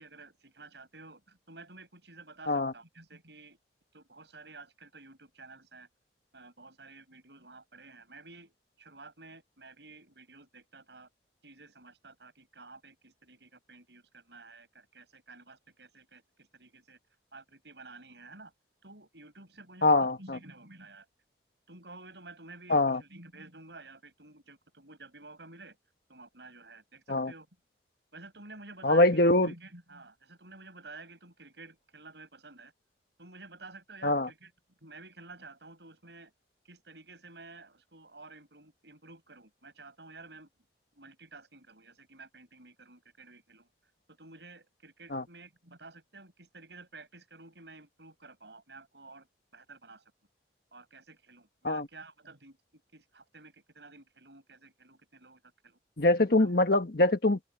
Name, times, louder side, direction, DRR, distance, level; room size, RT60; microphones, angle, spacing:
voice 1, 0.0-3.6 3.9-5.9 6.3-11.1 11.4-17.0 17.3-18.5 18.8-21.1 21.7-25.8 26.1-27.5 28.1-32.7 33.2-34.5 34.8-36.3 36.6-40.5 40.9-43.7 44.1-49.3 49.5-50.0 50.7-52.6 52.9-55.8 56.4-56.5, right 3 dB, 75° right, 6.5 m, -51 dB
voice 2, 19.8-20.4 22.7-23.0 27.1-27.3 28.8-29.5 34.0-34.3 45.1-45.2 51.6-51.9 56.0-57.4, left 2 dB, 55° left, 1.6 m, -24 dB
open air
head